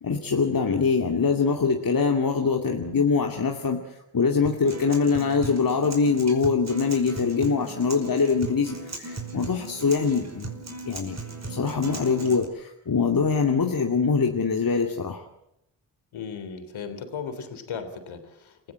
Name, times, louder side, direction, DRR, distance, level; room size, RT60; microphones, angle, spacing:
voice 1, 0.0-11.2 11.5-15.2, left 5 dB, 45° left, 2 dB, 2.5 m, -24 dB
Acoustic guitar, 4.5-12.4, right 2 dB, 30° right, 5.1 m, -37 dB
voice 2, 16.1-18.7, left 6 dB, 70° left, 8 dB, 3.6 m, -36 dB
27.0 x 15.5 x 7.7 m, 0.80 s
hypercardioid pair, 40°, 49 cm